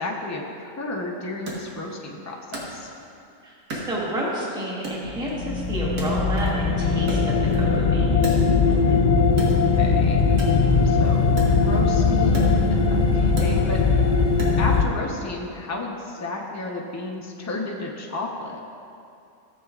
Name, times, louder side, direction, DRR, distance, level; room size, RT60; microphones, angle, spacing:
voice 1, 0.0-2.9 8.7-9.0 9.5-10.2 10.8-13.8 14.6-18.6, left 2 dB, 20° left, -1 dB, 0.4 m, -32 dB
Wood, 1.5-3.2 3.7-4.5 4.8-6.7 6.9-8.9 9.3-14.8, right 1 dB, 85° right, 1.9 m, -37 dB
voice 2, 3.4-8.3, equal, 5° right, -5 dB, 1.0 m, -30 dB
sound 1, 5.1-14.8, left 4 dB, 90° left, 0.4 m, -20 dB
13.5 x 7.5 x 2.4 m, 2.6 s
omnidirectional pair, 1.6 m